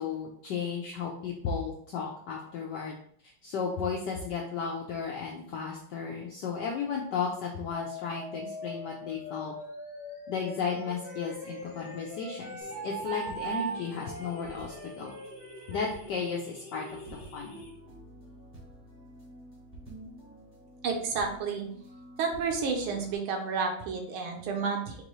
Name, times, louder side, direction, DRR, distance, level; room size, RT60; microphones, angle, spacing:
voice 1, 0.0-3.0 3.4-9.5 10.3-15.2 15.7-17.5, left 5 dB, 80° left, -1 dB, 0.9 m, -34 dB
sound 1, 7.7-17.7, left 4 dB, 45° left, 1.4 m, -45 dB
Wind instrument woodwind instrument, 10.7-16.0, right 5 dB, 60° right, 1.0 m, -40 dB
sound 2, 12.6-23.2, equal, 10° right, 0.6 m, -50 dB
voice 2, 20.8-21.7 22.2-25.0, right 5 dB, 75° right, 3 dB, 1.6 m, -30 dB
4.5 x 2.6 x 3.0 m, 0.62 s
omnidirectional pair, 2.4 m